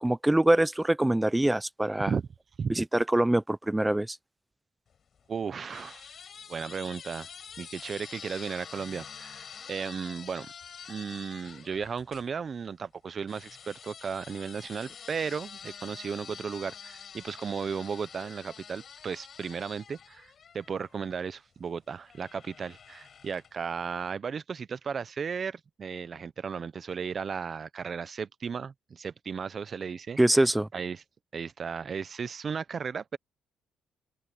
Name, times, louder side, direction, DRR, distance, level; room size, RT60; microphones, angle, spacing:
voice 1, 0.0-2.1 2.7-4.2 30.2-30.7, right 1 dB, 10° right, 0.6 m, -24 dB
sound 1, 4.9-12.3 13.3-21.2 22.1-23.7, left 7 dB, 50° left, 6.4 m, -47 dB
voice 2, 5.3-6.1 6.5-7.3 7.6-10.5 10.9-30.5 30.7-31.0 31.3-33.2, right 6 dB, 45° right, 0.9 m, -35 dB
open air
cardioid pair, 90°, 0 cm